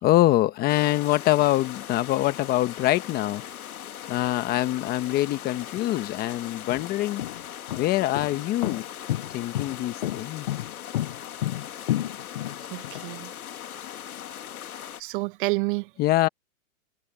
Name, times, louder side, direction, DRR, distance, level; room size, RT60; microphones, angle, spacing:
voice 1, 0.0-3.4 4.1-7.2 7.7-8.8 9.3-10.5 16.0-16.3, left 16 dB, 20° left, 1.1 m, -24 dB
sound 1, 0.7-15.0, left 10 dB, 80° left, 2.3 m, -40 dB
sound 2, 5.7-5.8 6.5-13.0, left 14 dB, 35° left, 0.4 m, -31 dB
voice 2, 12.6-13.3 14.8-15.9, right 24 dB, 35° right, 1.0 m, -30 dB
hypercardioid pair, 150°, 43 cm